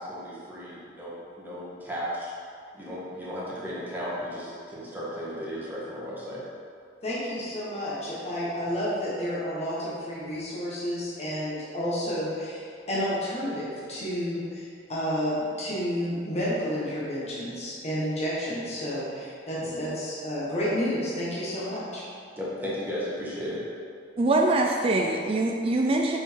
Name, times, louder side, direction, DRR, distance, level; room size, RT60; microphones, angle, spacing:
voice 1, 0.0-2.3 2.7-6.4 19.6-19.9 22.4-23.6, equal, 10° right, -8 dB, 1.4 m, -35 dB
voice 2, 7.0-22.0, equal, 35° left, -8 dB, 1.3 m, -30 dB
voice 3, 24.2-26.2, right 2 dB, 30° right, 1 dB, 0.4 m, -23 dB
5.6 x 4.2 x 4.6 m, 2.4 s
head